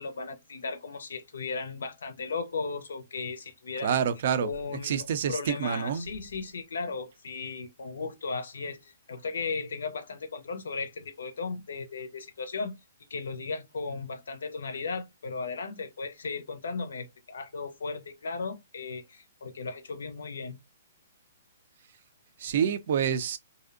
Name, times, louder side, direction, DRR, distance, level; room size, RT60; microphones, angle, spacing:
voice 1, 0.0-4.0 4.4-12.7 13.1-20.6, left 4 dB, 75° left, 0.5 m, -36 dB
voice 2, 3.8-4.5 4.8-6.1 22.4-23.4, right 8 dB, 55° right, 0.4 m, -27 dB
2.6 x 2.0 x 2.4 m
hypercardioid pair, 135°, 0 cm